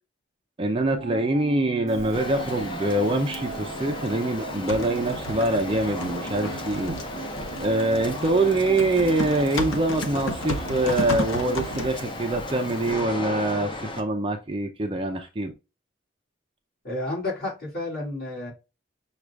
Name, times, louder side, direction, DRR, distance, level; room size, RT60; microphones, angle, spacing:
voice 1, 0.6-7.0 7.6-15.5, right 2 dB, 25° right, 0.5 m, -24 dB
sound 1, 0.7-12.8, right 5 dB, 70° right, 0.5 m, -39 dB
Typing, 1.9-12.9, left 1 dB, 75° left, 0.8 m, -35 dB
sound 2, 2.1-14.0, left 2 dB, 25° left, 0.6 m, -35 dB
voice 2, 16.8-18.5, left 2 dB, 45° left, 2.6 m, -31 dB
6.2 x 2.4 x 3.3 m
head